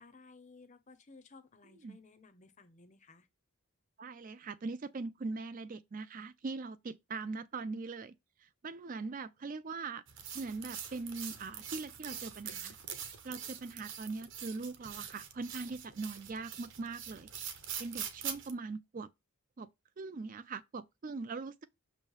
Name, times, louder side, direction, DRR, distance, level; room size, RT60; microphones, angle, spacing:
voice 1, 0.0-3.3, left 3 dB, 35° left, 0.7 m, -57 dB
voice 2, 4.0-8.1 8.4-10.0 10.3-12.8 13.2-17.3 17.8-19.1 19.6-19.7 20.0-21.6, right 3 dB, 35° right, 0.4 m, -41 dB
sound 1, 10.1-18.5, right 8 dB, 55° right, 1.0 m, -44 dB
6.4 x 3.0 x 5.4 m
head